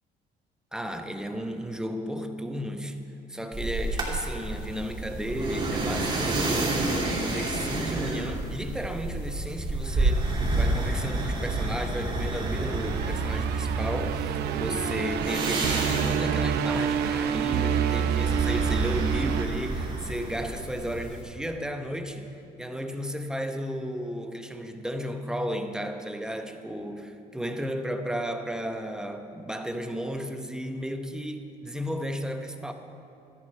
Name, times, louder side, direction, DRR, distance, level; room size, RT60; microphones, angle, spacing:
voice 1, 0.7-3.0 3.3-32.7, equal, 5° right, 6 dB, 0.9 m, -34 dB
sound 1, 3.5-21.2, right 2 dB, 25° right, 2.6 m, -30 dB
sound 2, 12.0-20.3, right 7 dB, 75° right, 0.7 m, -28 dB
13.0 x 11.0 x 5.3 m, 2.8 s
cardioid pair, 110°, 17 cm